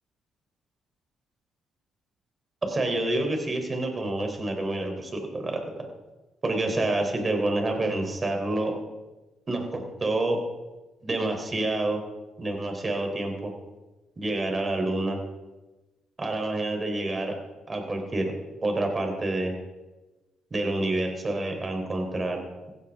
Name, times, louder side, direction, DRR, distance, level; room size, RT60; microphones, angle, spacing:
voice 1, 2.6-5.9 6.4-8.7 9.5-10.4 11.0-12.0 12.4-13.5 14.2-15.2 16.2-17.3 17.7-18.3 18.6-19.5 20.5-22.4, right 2 dB, 30° right, 3 dB, 3.7 m, -28 dB
16.5 x 14.5 x 3.7 m, 1.1 s
cardioid pair, 90°, 0 cm